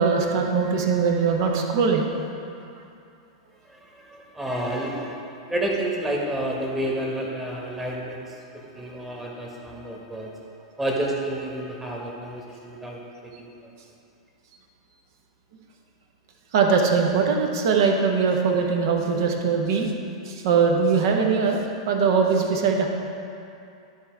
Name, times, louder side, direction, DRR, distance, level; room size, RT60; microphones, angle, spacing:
voice 1, 0.0-2.1 16.5-19.9 20.2-22.9, right 5 dB, 55° right, 2 dB, 1.1 m, -21 dB
voice 2, 3.6-5.2 5.5-10.3 10.8-13.7, right 1 dB, 10° right, -2 dB, 1.5 m, -30 dB
12.5 x 4.5 x 4.6 m, 2.6 s
figure-of-eight pair, 95°, 3 cm